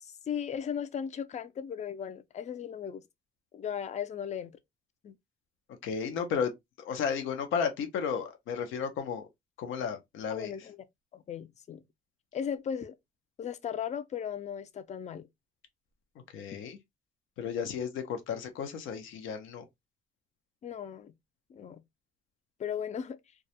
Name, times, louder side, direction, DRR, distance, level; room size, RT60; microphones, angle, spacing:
voice 1, 0.0-3.0 3.5-4.5 5.0-5.2 10.3-10.8 11.1-11.8 12.3-13.0 13.4-15.3 20.6-21.1 21.5-21.8 22.6-23.2, left 8 dB, 35° left, 0.4 m, -36 dB
voice 2, 5.8-6.5 6.8-9.3 9.6-10.5 16.3-16.8 17.4-19.6, left 6 dB, 85° left, 0.6 m, -33 dB
2.3 x 2.0 x 2.7 m
cardioid pair, 90°, 20 cm